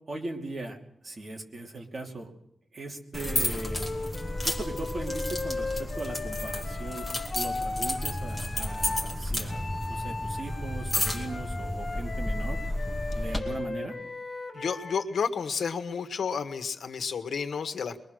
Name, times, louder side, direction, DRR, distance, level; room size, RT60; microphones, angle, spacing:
voice 1, 0.1-0.8 1.0-2.3 2.7-3.9 4.4-7.1 7.3-12.6 13.1-14.0, right 2 dB, 35° right, 1 dB, 2.9 m, -38 dB
sound 1, 3.1-13.4, left 1 dB, 5° left, 2.6 m, -32 dB
Wind instrument woodwind instrument, 3.2-9.1 9.5-15.1, left 3 dB, 35° left, 4.5 m, -37 dB
voice 2, 14.5-18.0, left 6 dB, 75° left, 8 dB, 1.6 m, -31 dB
23.0 x 22.5 x 6.5 m, 0.73 s
wide cardioid pair, 140°, 0 cm